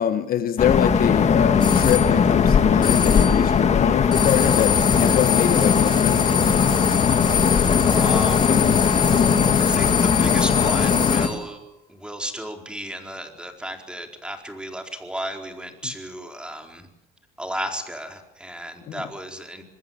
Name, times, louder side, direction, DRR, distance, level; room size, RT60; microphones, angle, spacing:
voice 1, 0.0-6.7 18.9-19.0, left 10 dB, 60° left, 1.4 m, -24 dB
sound 1, 0.6-11.3, left 6 dB, 40° left, 2.6 m, -19 dB
sound 2, 1.6-2.1 2.8-3.5 4.1-11.5, left 7 dB, 25° left, 2.9 m, -26 dB
voice 2, 7.9-8.6 9.6-11.6 11.9-16.9 17.4-19.6, equal, 5° right, 4.4 m, -33 dB
26.5 x 20.5 x 7.4 m
cardioid pair, 110°, 17 cm